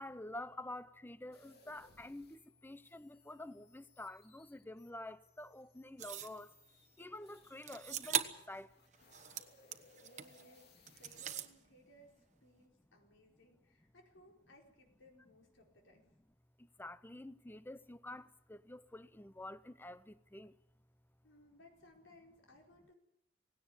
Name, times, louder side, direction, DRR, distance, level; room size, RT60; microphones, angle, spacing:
voice 1, 0.0-6.5 7.0-8.7 16.8-20.5, left 1 dB, 10° left, 0.7 m, -49 dB
sound 1, 1.3-8.1 8.6-11.3, left 3 dB, 60° left, 3.3 m, -66 dB
sound 2, 6.0-6.4 7.6-8.5 8.9-10.4 10.9-11.5, right 9 dB, 40° right, 1.2 m, -40 dB
voice 2, 9.4-9.7 10.0-16.1 21.2-22.9, left 1 dB, 80° left, 4.8 m, -63 dB
18.5 x 17.5 x 8.7 m
head